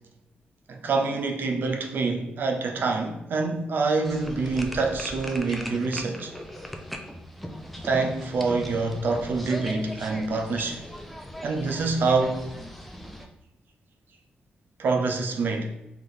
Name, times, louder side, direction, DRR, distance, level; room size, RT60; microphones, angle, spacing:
voice 1, 0.7-6.3 7.8-10.8 11.4-12.5 14.8-15.7, right 3 dB, 70° right, 0.6 m, -26 dB
sound 1, 4.0-13.3, equal, ahead, 0.5 m, -39 dB
3.4 x 3.0 x 3.9 m
cardioid pair, 85°, 4 cm